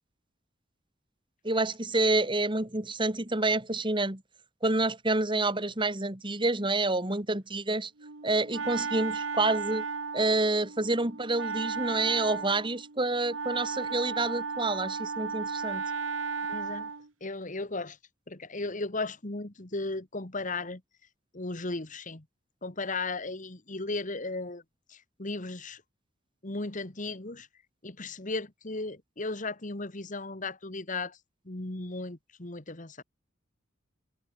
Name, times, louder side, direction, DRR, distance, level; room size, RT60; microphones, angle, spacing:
voice 1, 1.4-4.2 4.6-7.9 8.2-9.8 10.1-15.8, right 2 dB, 25° right, 2.6 m, -28 dB
Wind instrument woodwind instrument, 8.0-17.1, right 4 dB, 80° right, 1.7 m, -35 dB
voice 2, 16.5-16.9 17.2-18.0 18.3-20.8 21.3-22.3 22.6-24.6 24.9-25.8 26.4-27.5 27.8-31.2 31.5-33.0, left 3 dB, 40° left, 1.9 m, -36 dB
open air
head